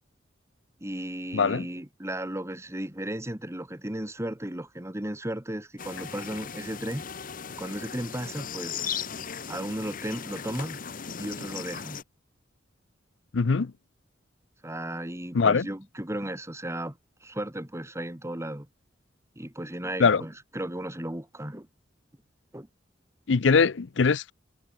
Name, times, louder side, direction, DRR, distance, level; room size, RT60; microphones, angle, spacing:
voice 1, 0.8-7.0 7.6-8.8 9.5-10.8 11.2-12.0 14.6-18.7 19.4-21.7 22.5-22.7, right 1 dB, 15° right, 2.0 m, -35 dB
voice 2, 1.3-1.7 13.3-13.7 15.3-15.7 20.0-20.2 23.3-24.3, left 5 dB, 70° left, 0.6 m, -22 dB
sound 1, 5.8-12.0, left 7 dB, 45° left, 1.1 m, -37 dB
head